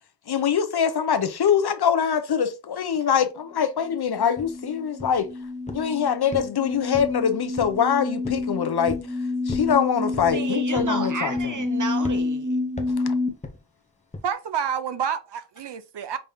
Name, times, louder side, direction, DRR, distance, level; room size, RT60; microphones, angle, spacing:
voice 1, 0.3-5.3 5.7-9.0 9.5-11.3 13.0-13.2, left 7 dB, 65° left, 0.7 m, -23 dB
sound 1, 3.8-13.3, left 3 dB, 10° right, 1.2 m, -29 dB
sound 2, 4.4-4.5 5.0-5.3 5.7-5.9 6.3-7.2 7.6-7.8 8.2-8.5 8.9-9.1 9.5-9.7 10.1-10.4 10.7-11.0 11.4-11.7 12.0-12.2 12.8-13.0 13.4-13.6 14.1-14.3, left 2 dB, 15° left, 0.8 m, -36 dB
voice 2, 10.3-12.6, right 4 dB, 45° right, 1.0 m, -32 dB
voice 3, 14.2-16.2, right 8 dB, 75° right, 0.6 m, -28 dB
5.2 x 3.3 x 2.7 m
wide cardioid pair, 100°, 42 cm